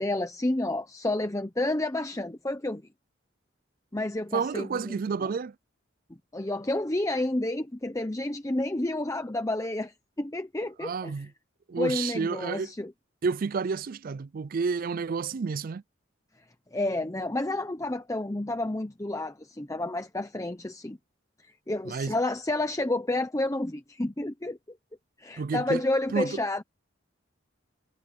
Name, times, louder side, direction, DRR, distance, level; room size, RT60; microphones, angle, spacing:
voice 1, 0.0-2.8 3.9-5.3 6.3-11.1 11.8-12.9 16.7-21.0 21.4-24.6 25.2-26.6, left 2 dB, 15° left, 0.8 m, -30 dB
voice 2, 4.3-5.5 10.8-11.3 11.7-12.7 13.2-15.8 21.9-22.2 25.4-25.8 26.1-26.4, right 5 dB, 45° right, 0.4 m, -30 dB
head